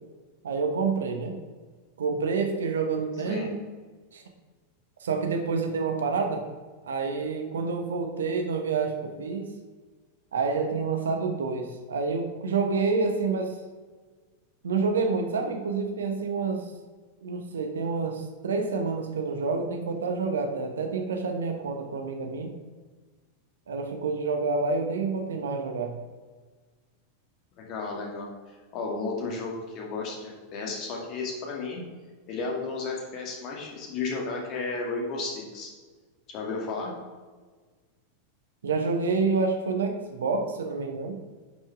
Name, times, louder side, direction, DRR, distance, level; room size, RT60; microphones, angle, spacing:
voice 1, 0.4-1.4 2.0-3.5 4.1-4.2 5.0-6.4 6.8-9.5 10.3-13.6 14.6-16.7 17.2-22.5 23.7-26.0 38.6-41.2, right 4 dB, 65° right, 5 dB, 1.0 m, -28 dB
voice 2, 27.5-28.3 28.7-31.8 32.3-35.7 36.3-36.9, left 3 dB, 40° left, -1 dB, 2.2 m, -33 dB
10.5 x 5.7 x 3.5 m, 1.4 s
figure-of-eight pair, 90°, 0 cm